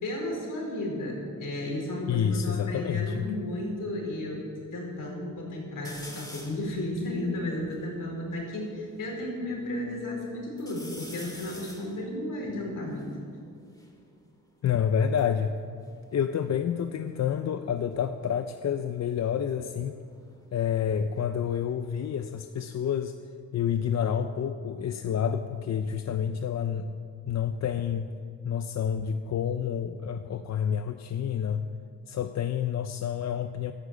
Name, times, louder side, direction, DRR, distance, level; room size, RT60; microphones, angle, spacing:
voice 1, 0.0-4.5 4.7-13.1, left 1 dB, 70° left, -1 dB, 4.6 m, -33 dB
voice 2, 2.1-3.3 14.6-15.5 16.1-20.0 20.5-23.2 23.5-26.9 27.3-28.1 28.4-31.7 32.1-33.7, left 8 dB, 55° left, 8 dB, 0.6 m, -28 dB
sound 1, 5.8-6.7 7.2-7.3 7.5-9.1 9.6-10.2 10.6-14.0 14.9-16.8 17.1-17.6 19.1-21.8 22.1-22.9, left 1 dB, 10° left, 2.2 m, -49 dB
12.5 x 10.5 x 8.3 m, 2.3 s
wide cardioid pair, 140°, 33 cm